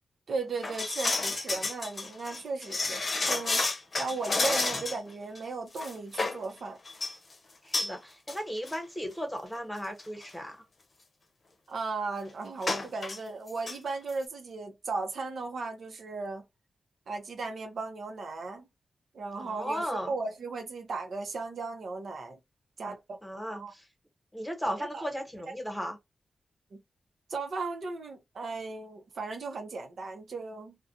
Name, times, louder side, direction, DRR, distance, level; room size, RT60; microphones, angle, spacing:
voice 1, 0.3-3.7 4.0-6.8 11.7-16.4 17.1-18.6 19.1-22.4 22.8-23.2 23.5-23.7 24.6-25.1 25.5-25.6 26.7-26.8 27.3-30.8, right 3 dB, 70° right, 0.7 m, -36 dB
sound 1, 0.6-5.1 5.4-5.5 5.8-6.4 6.9-7.2 7.7-7.9 8.3-8.4 8.7-8.8 9.6-9.7 10.0-10.2 12.6-13.2 13.5-13.8 14.1-14.2, left 3 dB, 45° left, 0.7 m, -30 dB
voice 2, 7.6-10.6 19.4-20.1 23.2-23.8 24.3-26.0, equal, 5° left, 1.2 m, -36 dB
2.4 x 2.2 x 2.6 m
cardioid pair, 65°, 0 cm